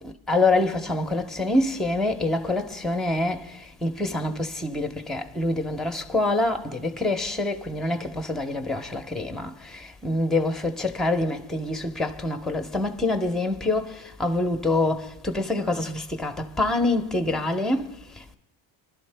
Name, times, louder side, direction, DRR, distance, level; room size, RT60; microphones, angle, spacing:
voice 1, 0.0-18.4, left 2 dB, ahead, 0.8 m, -26 dB
28.0 x 11.5 x 2.2 m
supercardioid pair, 85°, 49 cm